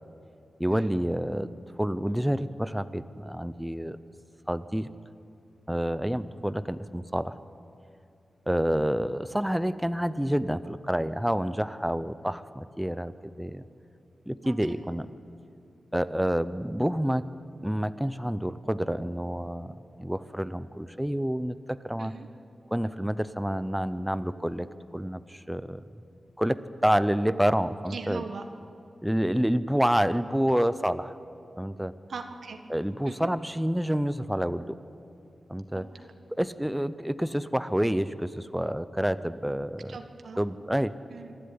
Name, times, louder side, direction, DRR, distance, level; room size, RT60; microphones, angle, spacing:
voice 1, 0.6-1.5 1.8-4.0 4.5-4.9 5.7-7.3 8.5-13.6 14.3-15.1 15.9-17.3 17.6-22.1 22.7-24.7 24.9-25.8 26.4-28.2 29.0-31.1 31.6-31.9 32.7-34.8 35.5-35.8 36.4-40.0 40.4-40.9, equal, 5° right, 14 dB, 0.6 m, -28 dB
voice 2, 27.9-28.4 32.1-32.6 33.0-33.3 35.7-35.9 39.9-40.4 41.1-41.3, right 5 dB, 70° right, 6 dB, 1.4 m, -40 dB
25.5 x 12.0 x 9.7 m, 2.7 s
wide cardioid pair, 125°, 0 cm